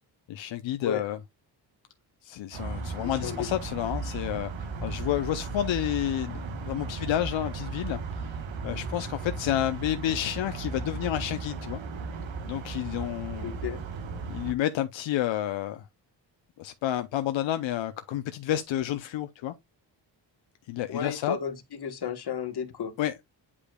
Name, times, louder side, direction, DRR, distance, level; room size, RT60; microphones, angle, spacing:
voice 1, 0.3-1.2 2.2-8.3 8.6-11.8 12.4-13.5 14.3-15.9 16.6-19.5 20.7-21.4 23.0-23.2, left 12 dB, 85° left, 0.6 m, -30 dB
sound 1, 2.5-14.5, right 4 dB, 90° right, 1.2 m, -36 dB
voice 2, 3.0-3.5 13.4-13.8 20.9-22.9, left 7 dB, 60° left, 1.3 m, -33 dB
8.4 x 5.0 x 2.2 m
wide cardioid pair, 120°, 44 cm